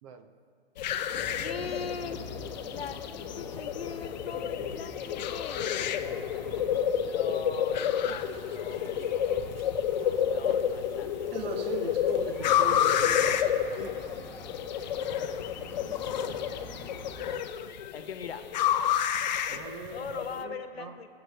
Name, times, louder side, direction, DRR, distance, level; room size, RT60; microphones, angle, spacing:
voice 1, 0.0-0.3 6.4-7.1 12.9-13.3 14.9-15.1 19.5-20.9, right 6 dB, 30° right, 9 dB, 0.8 m, -47 dB
sound 1, 0.8-20.4, left 9 dB, 45° left, 0.7 m, -30 dB
sound 2, 1.1-17.3, left 2 dB, 10° left, 1.4 m, -45 dB
voice 2, 1.4-2.2 2.6-6.0 7.0-9.4 10.2-12.2 15.5-16.2 16.8-17.4 17.9-18.5 19.9-21.1, left 6 dB, 80° left, 8 dB, 1.2 m, -42 dB
sound 3, 8.1-13.9, right 5 dB, 70° right, 1.1 m, -41 dB
21.5 x 8.0 x 3.4 m, 2.7 s
hypercardioid pair, 140°, 30 cm